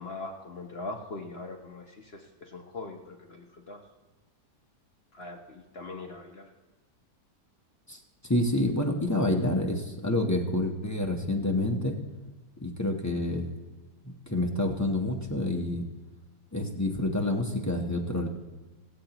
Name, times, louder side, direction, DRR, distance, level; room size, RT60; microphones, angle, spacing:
voice 1, 0.0-3.8 5.1-6.5, left 2 dB, 45° left, 3 dB, 0.9 m, -41 dB
voice 2, 8.3-12.0 12.6-13.5 14.3-15.8 16.5-18.3, left 1 dB, 20° left, 1 dB, 0.5 m, -28 dB
22.5 x 8.2 x 3.0 m, 1.2 s
omnidirectional pair, 1.8 m